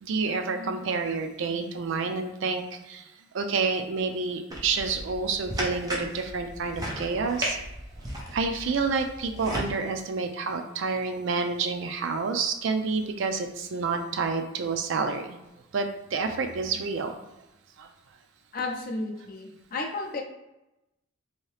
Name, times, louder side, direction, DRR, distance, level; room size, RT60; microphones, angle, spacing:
voice 1, 0.0-3.1 3.3-7.6 8.3-15.4 15.7-17.2 17.8-17.9, right 4 dB, 65° right, 6 dB, 0.4 m, -29 dB
sound 1, 4.5-9.7, equal, 20° right, 0.6 m, -35 dB
voice 2, 18.5-20.2, left 3 dB, 45° left, 2 dB, 0.5 m, -33 dB
2.8 x 2.7 x 3.2 m, 0.95 s
head